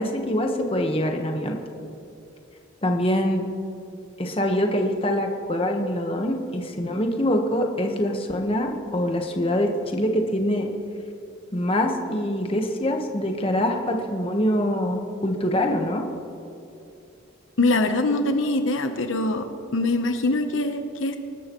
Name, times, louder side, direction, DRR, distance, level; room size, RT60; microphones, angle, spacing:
voice 1, 0.0-1.6 2.8-3.4 4.2-10.7 11.5-16.0, left 1 dB, 25° left, 3 dB, 1.2 m, -24 dB
voice 2, 17.6-19.5 19.7-21.2, left 2 dB, 70° left, 6 dB, 0.9 m, -23 dB
25.5 x 12.5 x 3.0 m, 2.7 s
head